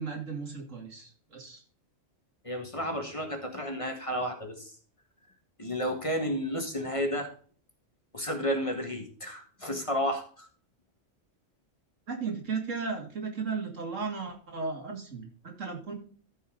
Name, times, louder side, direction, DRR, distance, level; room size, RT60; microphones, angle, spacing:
voice 1, 0.0-1.6 12.1-15.9, right 5 dB, 90° right, 2 dB, 2.9 m, -35 dB
voice 2, 2.4-4.7 5.6-7.3 8.1-10.5, equal, 25° left, 4 dB, 1.8 m, -32 dB
14.5 x 5.6 x 3.9 m, 0.44 s
omnidirectional pair, 1.3 m